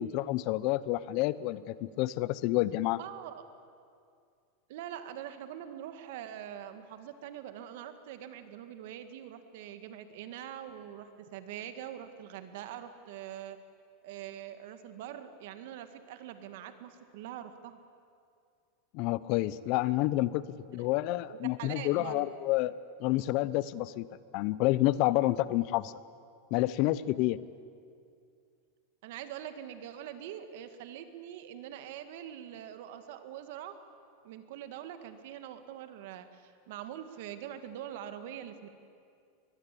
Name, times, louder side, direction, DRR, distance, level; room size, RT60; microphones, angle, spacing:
voice 1, 0.0-3.0 18.9-20.4 20.7-22.7 23.0-24.1 24.3-25.9 26.5-27.4, left 16 dB, 50° left, 18 dB, 0.8 m, -29 dB
voice 2, 3.0-3.4 4.7-13.6 14.0-17.8 20.8-20.9 21.2-22.3 29.0-33.7 34.2-38.7, right 10 dB, 65° right, 9 dB, 2.1 m, -44 dB
23.0 x 21.0 x 8.6 m, 2.3 s
supercardioid pair, 135°, 0 cm